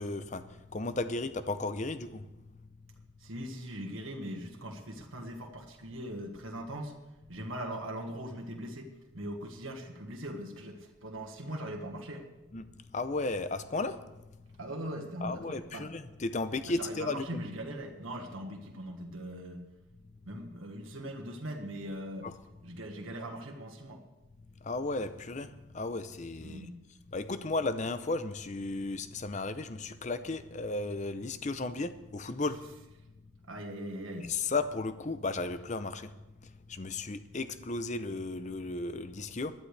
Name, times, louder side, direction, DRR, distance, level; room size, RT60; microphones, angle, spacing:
voice 1, 0.0-2.3 12.5-12.7 12.9-14.0 15.2-17.4 22.2-22.4 24.6-26.7 27.1-32.6 34.3-36.2 36.4-39.5, left 3 dB, 35° left, 11 dB, 0.6 m, -34 dB
voice 2, 3.2-7.0 7.3-12.3 14.6-15.9 16.7-19.7 20.2-22.3 22.6-24.0 26.4-26.8 33.5-34.3, right 1 dB, 85° right, 2 dB, 1.6 m, -40 dB
20.0 x 12.5 x 3.3 m, 1.0 s
head